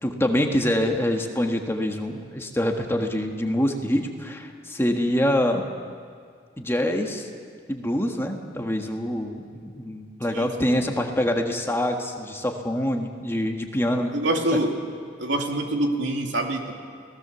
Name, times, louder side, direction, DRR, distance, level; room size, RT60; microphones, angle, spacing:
voice 1, 0.0-5.7 6.6-7.3 7.7-14.1 14.5-14.6, left 1 dB, 15° left, 3 dB, 1.6 m, -25 dB
voice 2, 14.1-14.7 15.2-16.7, right 1 dB, 90° right, 2 dB, 2.8 m, -25 dB
30.0 x 18.0 x 7.0 m, 2.1 s
head